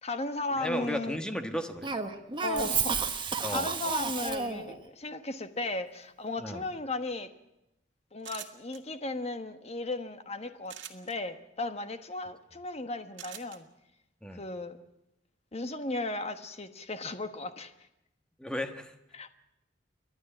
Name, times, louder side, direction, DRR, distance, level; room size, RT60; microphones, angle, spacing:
voice 1, 0.0-1.2 2.4-7.3 8.1-13.7 14.3-14.8 15.5-17.7 19.1-19.4, left 2 dB, 35° left, 9 dB, 1.2 m, -36 dB
voice 2, 0.6-1.9 3.4-3.7 6.4-6.6 14.2-14.5 18.4-18.9, equal, 5° left, 7 dB, 1.3 m, -34 dB
Cough, 1.8-4.8, right 5 dB, 25° right, 1.3 m, -31 dB
sound 1, 8.2-8.8 10.6-11.1 13.2-13.6, right 10 dB, 85° right, 1.9 m, -43 dB
29.5 x 11.5 x 9.0 m, 0.88 s
head